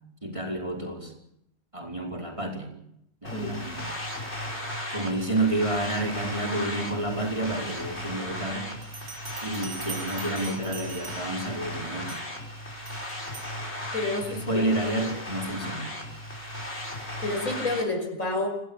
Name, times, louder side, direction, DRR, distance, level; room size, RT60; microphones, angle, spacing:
voice 1, 0.2-1.1 1.7-2.7 3.2-3.9 4.9-8.7 9.4-12.1 14.3-15.9, right 2 dB, 20° right, 0 dB, 4.8 m, -30 dB
sound 1, 3.2-17.8, left 1 dB, 50° left, 5.7 m, -36 dB
Bell, 8.8-11.5 12.1-12.4 12.9-13.6, right 5 dB, 80° right, 3.0 m, -42 dB
voice 2, 13.9-14.7 17.2-18.5, left 2 dB, 70° left, 4 dB, 5.9 m, -29 dB
28.0 x 17.5 x 7.2 m, 0.77 s
omnidirectional pair, 1.5 m